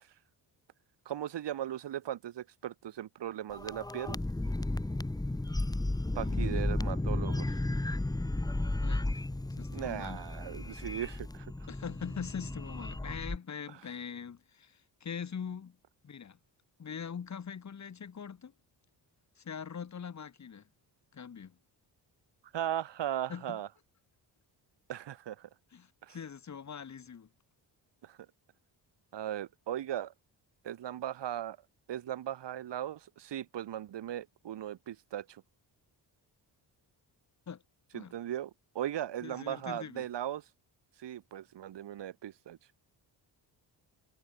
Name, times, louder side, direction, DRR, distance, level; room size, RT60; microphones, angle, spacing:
voice 1, 1.1-4.2 6.2-7.6 9.7-11.5 22.5-23.7 24.9-25.5 26.0-26.2 28.0-28.2 29.1-30.1 30.6-31.6 31.9-35.4 37.9-38.5 38.8-40.4 41.0-42.6, right 11 dB, 75° right, 5.1 m, -38 dB
sound 1, 3.5-13.4, left 2 dB, 10° left, 2.1 m, -34 dB
voice 2, 6.1-6.6 8.8-9.1 9.6-10.2 11.7-15.8 16.0-16.4 16.8-18.5 19.4-20.6 21.1-21.6 23.3-23.6 25.7-27.3 37.5-37.6 37.9-38.1 39.2-40.0, left 7 dB, 40° left, 3.9 m, -42 dB
cardioid pair, 150°, 43 cm